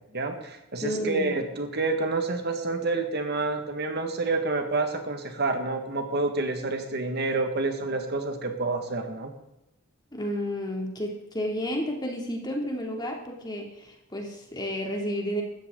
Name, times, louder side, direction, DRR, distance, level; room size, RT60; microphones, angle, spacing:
voice 1, 0.1-9.3, right 3 dB, 50° right, 5 dB, 1.8 m, -28 dB
voice 2, 0.8-1.4 10.1-15.4, equal, 20° left, 1 dB, 2.8 m, -31 dB
17.0 x 13.0 x 3.9 m, 0.89 s
head